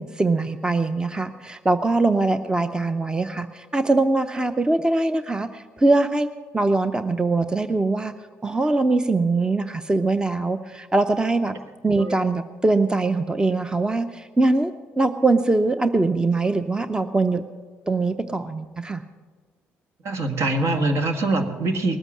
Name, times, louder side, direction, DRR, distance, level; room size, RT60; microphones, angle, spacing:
voice 1, 0.0-6.3 6.5-8.1 8.4-11.5 11.8-17.4 17.9-19.0, right 2 dB, 15° right, 10 dB, 0.7 m, -22 dB
voice 2, 20.0-22.0, right 2 dB, 60° right, 5 dB, 1.7 m, -23 dB
19.5 x 8.1 x 7.3 m, 1.5 s
supercardioid pair, 65°, 5 cm